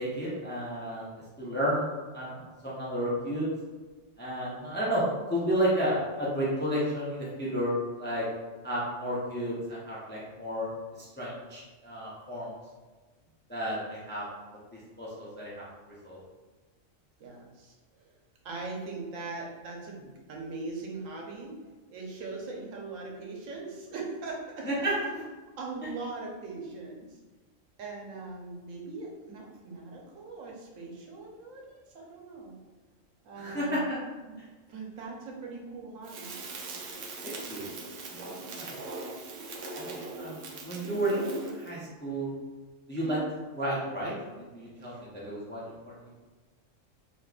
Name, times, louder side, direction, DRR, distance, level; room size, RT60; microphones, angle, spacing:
voice 1, 0.0-3.5 4.2-8.3 8.6-10.7 11.0-12.5 13.5-14.3 15.0-15.6 16.0-16.2 24.6-24.9 33.4-34.0 37.2-37.7 38.1-38.2 38.5-38.7 39.8-41.2 41.5-42.3 42.9-43.2 43.6-44.1 44.5-46.1, equal, 15° left, -6 dB, 0.3 m, -32 dB
voice 2, 17.2-18.2 18.4-21.6 21.9-24.9 25.6-27.2 27.8-32.6 33.2-33.8 34.3-34.4 34.7-36.4 38.4-38.9 39.6-39.8 43.0-43.2 44.8-45.0, right 3 dB, 85° right, -1 dB, 1.1 m, -41 dB
Crackle, 36.0-41.7, right 2 dB, 65° right, 0.8 m, -40 dB
3.6 x 2.8 x 2.3 m, 1.3 s
omnidirectional pair, 1.3 m